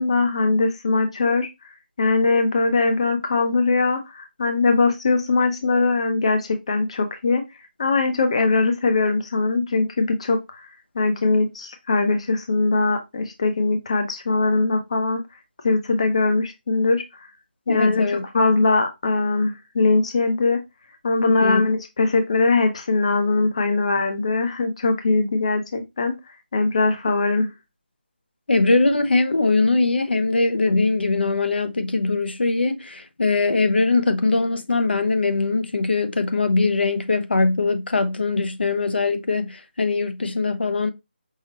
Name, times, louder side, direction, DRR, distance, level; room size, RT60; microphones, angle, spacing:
voice 1, 0.0-1.5 2.0-7.4 7.8-10.7 10.9-15.2 15.6-17.3 17.7-20.6 21.0-26.1 26.5-27.5, left 3 dB, 35° left, 0.6 m, -21 dB
voice 2, 17.7-18.2 21.3-21.6 28.5-40.9, left 3 dB, 70° left, 0.7 m, -21 dB
5.6 x 2.1 x 2.9 m
figure-of-eight pair, 175°, 6 cm